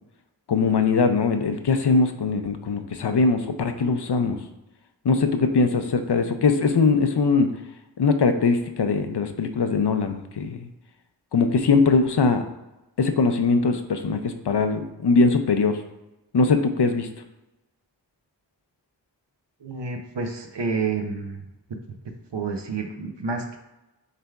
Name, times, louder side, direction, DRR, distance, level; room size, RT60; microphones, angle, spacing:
voice 1, 0.5-4.4 5.0-7.5 8.0-10.7 11.3-12.4 13.0-15.8 16.3-17.1, left 4 dB, 65° left, 7 dB, 0.6 m, -21 dB
voice 2, 19.6-21.4 22.3-23.6, right 4 dB, 70° right, 4 dB, 0.7 m, -29 dB
6.6 x 3.3 x 2.3 m, 0.97 s
wide cardioid pair, 45°, 44 cm